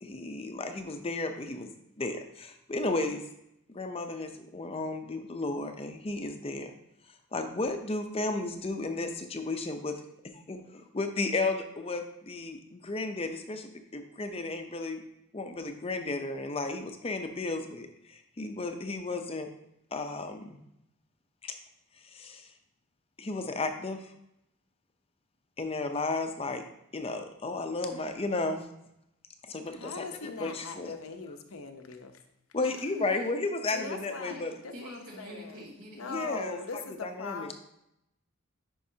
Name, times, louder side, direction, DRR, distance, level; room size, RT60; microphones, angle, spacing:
voice 1, 0.0-1.7 2.0-3.2 3.7-6.7 7.3-15.0 15.3-19.5 19.9-20.6 21.4-21.6 22.0-22.5 23.2-24.1 25.6-26.6 26.9-28.7 29.4-30.9 32.5-34.5 36.1-36.6 37.0-37.5, left 3 dB, 25° left, 0.6 m, -34 dB
voice 2, 29.8-32.2 33.7-34.4 34.6-35.6 35.9-37.5, left 4 dB, 80° left, 0.8 m, -40 dB
voice 3, 32.6-33.2 34.3-34.4 34.7-36.5, equal, 85° right, 2.7 m, -45 dB
10.5 x 5.3 x 2.8 m
head